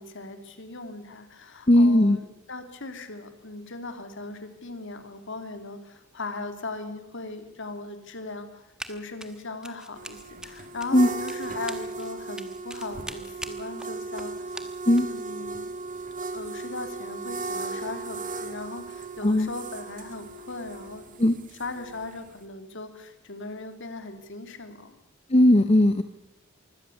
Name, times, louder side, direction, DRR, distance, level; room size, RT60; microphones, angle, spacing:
voice 1, 0.0-14.6 15.0-15.8 16.3-21.1 21.5-25.0, left 3 dB, 60° left, 8 dB, 2.5 m, -38 dB
voice 2, 1.7-2.2 10.9-11.1 14.9-15.1 19.2-19.5 21.2-21.4 25.3-26.0, left 1 dB, 30° left, 10 dB, 0.8 m, -18 dB
Run, 8.8-8.9 9.2-15.2, right 1 dB, 5° right, 1.5 m, -42 dB
sound 1, 10.0-22.4, right 3 dB, 40° right, 1.6 m, -37 dB
24.5 x 17.0 x 7.0 m, 0.94 s
head